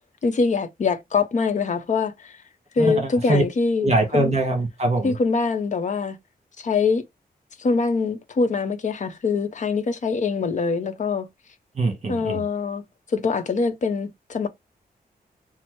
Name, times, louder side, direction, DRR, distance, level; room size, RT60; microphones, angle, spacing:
voice 1, 0.2-2.4 2.7-3.9 4.1-4.3 5.0-6.2 6.6-7.1 7.6-11.3 12.1-12.8 13.1-14.5, left 4 dB, 50° left, 0.7 m, -23 dB
voice 2, 2.8-3.4 3.8-5.1 11.7-12.5, right 2 dB, 45° right, 1.3 m, -22 dB
4.3 x 2.0 x 4.5 m
wide cardioid pair, 155°, 16 cm